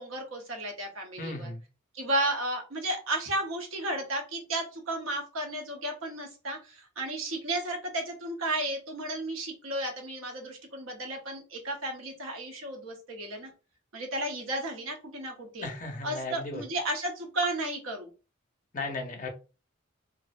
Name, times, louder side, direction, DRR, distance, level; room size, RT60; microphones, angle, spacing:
voice 1, 0.0-1.5 1.9-13.5 13.9-15.7 16.0-18.1, right 1 dB, 85° right, 2 dB, 0.8 m, -33 dB
voice 2, 1.2-1.6 15.6-16.6 18.7-19.3, left 2 dB, 40° left, 3 dB, 0.5 m, -36 dB
2.6 x 2.1 x 2.4 m, 0.33 s
head